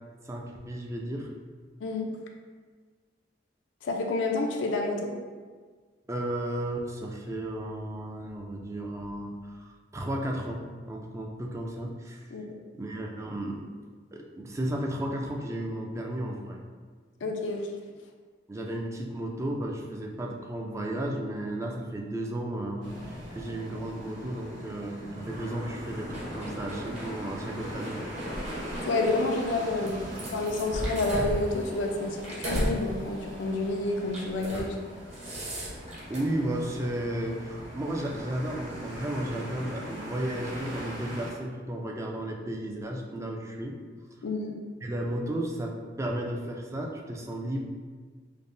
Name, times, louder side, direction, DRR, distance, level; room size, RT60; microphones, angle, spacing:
voice 1, 0.3-1.3 6.1-12.3 12.7-13.6 14.1-16.6 18.5-28.0 36.1-43.8 44.8-47.6, right 1 dB, 15° right, 0 dB, 0.3 m, -34 dB
voice 2, 3.8-5.1 12.3-12.4 17.2-17.7 28.8-30.0 30.3-34.8 44.2-44.6, left 2 dB, 85° left, 2 dB, 0.4 m, -29 dB
sound 1, 22.8-41.3, equal, 70° right, 1.0 m, -41 dB
sound 2, 26.1-27.1 27.7-29.2 29.9-32.8 33.2-33.4 34.1-34.7 35.0-36.2, equal, 35° right, 0.8 m, -35 dB
5.2 x 2.0 x 2.6 m, 1.5 s
head